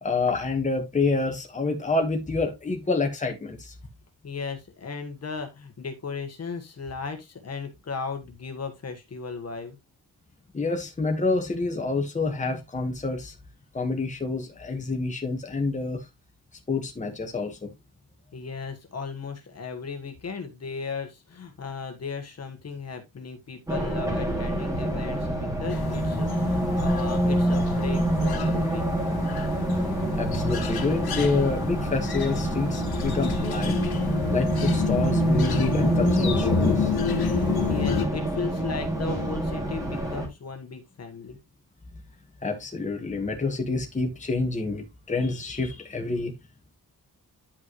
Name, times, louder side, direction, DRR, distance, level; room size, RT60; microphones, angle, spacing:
voice 1, 0.0-3.7 10.5-13.3 13.7-16.0 16.7-17.7 30.1-33.8 34.3-36.9 42.4-46.3, left 3 dB, 20° left, 1.4 m, -28 dB
voice 2, 4.2-9.8 18.3-28.9 37.7-41.4, left 5 dB, 45° left, 1.4 m, -36 dB
Race car auto racing, 23.7-40.3, right 1 dB, 10° right, 2.4 m, -26 dB
sound 1, 25.7-38.1, left 7 dB, 80° left, 1.5 m, -30 dB
10.0 x 5.3 x 3.0 m
wide cardioid pair, 150°, 37 cm